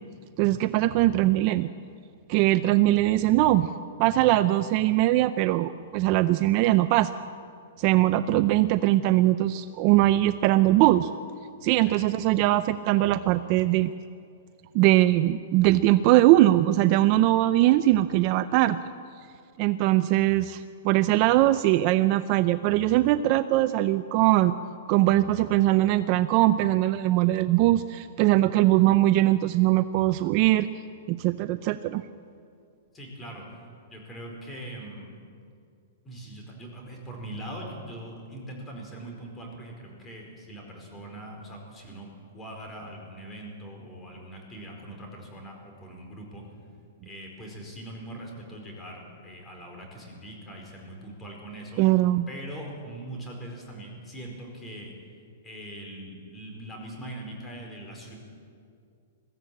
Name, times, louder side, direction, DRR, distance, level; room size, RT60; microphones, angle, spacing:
voice 1, 0.4-1.7 2.3-3.7 4.0-7.1 7.8-11.1 11.6-13.9 14.7-18.8 19.6-24.5 24.9-30.7 31.1-32.0 51.8-52.3, right 15 dB, 35° right, 12 dB, 0.5 m, -21 dB
voice 2, 32.9-33.5 33.9-35.1 36.0-46.4 47.0-51.8 52.3-54.9 55.4-58.2, right 1 dB, 15° left, 1 dB, 4.7 m, -41 dB
21.5 x 15.0 x 8.7 m, 2.4 s
hypercardioid pair, 155°, 0 cm